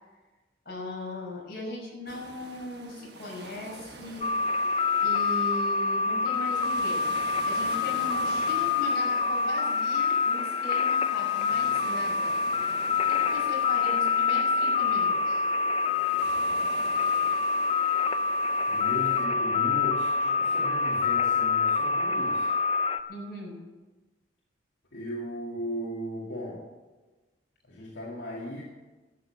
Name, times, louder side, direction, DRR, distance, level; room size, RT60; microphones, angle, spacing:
voice 1, 0.7-4.3 5.0-7.1 7.4-12.3 13.1-15.4 23.1-23.6, left 1 dB, 55° left, -3 dB, 5.7 m, -38 dB
sound 1, 2.1-19.2, right 3 dB, 60° right, 1.3 m, -47 dB
sound 2, 4.2-23.0, left 5 dB, 30° left, 0.6 m, -26 dB
voice 2, 18.7-22.5 24.9-26.7 27.7-28.6, equal, 80° left, -4 dB, 2.3 m, -37 dB
12.5 x 8.4 x 8.6 m, 1.2 s
head